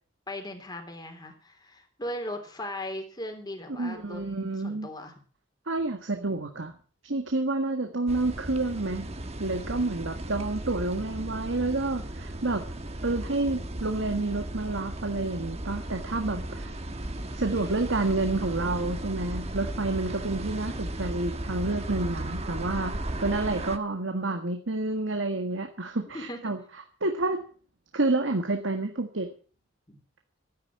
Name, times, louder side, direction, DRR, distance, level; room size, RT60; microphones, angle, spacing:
voice 1, 0.3-4.2 4.6-5.1 17.3-17.9 26.1-26.4 29.9-30.0, left 1 dB, 20° left, 4 dB, 3.3 m, -38 dB
voice 2, 3.8-4.9 5.7-6.7 7.0-9.1 9.4-12.7 13.0-16.7 17.3-26.6 27.0-27.4 27.9-29.3, right 2 dB, 90° right, 5 dB, 1.7 m, -29 dB
sound 1, 8.1-23.8, right 1 dB, 35° right, 1.4 m, -35 dB
13.5 x 10.5 x 7.5 m, 0.41 s
head